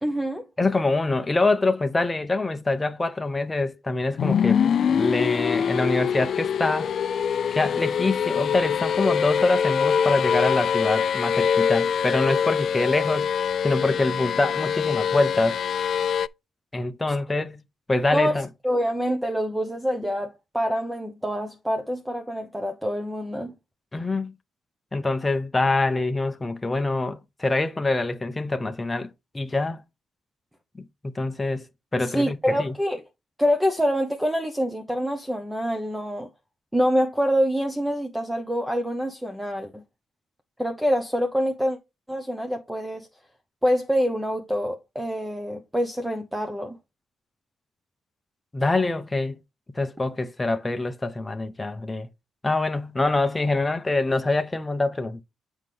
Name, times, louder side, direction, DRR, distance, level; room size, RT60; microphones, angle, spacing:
voice 1, 0.0-0.5 18.1-23.5 32.0-33.0 33.4-36.3 36.7-39.8 40.6-41.8 42.1-43.1 43.6-46.8, equal, 5° right, 1.0 m, -26 dB
voice 2, 0.6-4.6 4.9-6.9 7.5-13.3 13.6-15.6 16.7-17.6 17.9-18.5 23.9-24.3 24.9-29.8 30.8-31.7 31.9-32.7 48.5-49.4 49.7-52.1 52.4-55.2, left 2 dB, 20° left, 0.7 m, -25 dB
sound 1, 4.2-16.3, left 7 dB, 55° left, 0.3 m, -24 dB
7.3 x 5.4 x 3.3 m
cardioid pair, 90°, 0 cm